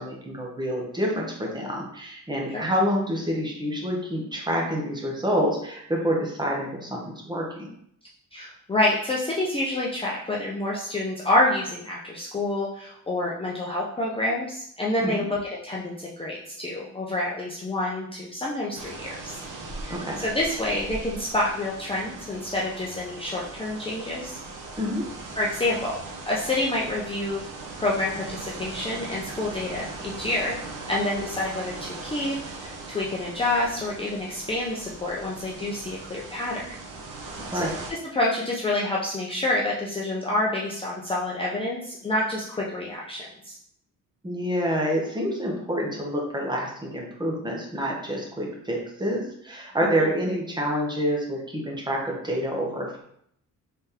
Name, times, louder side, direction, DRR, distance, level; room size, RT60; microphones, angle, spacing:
voice 1, 0.0-7.7 15.0-15.3 19.9-20.2 24.8-25.1 37.5-37.8 44.2-53.0, equal, 15° right, -2 dB, 0.8 m, -27 dB
voice 2, 8.3-19.4 19.8-24.4 25.4-26.0 26.3-27.4 27.8-30.5 30.9-36.7 37.5-43.6 50.0-50.1, left 1 dB, 20° left, -5 dB, 0.5 m, -28 dB
sound 1, 18.8-37.9, right 3 dB, 75° right, 0.8 m, -39 dB
3.7 x 3.4 x 2.8 m, 0.69 s
cardioid pair, 145°, 32 cm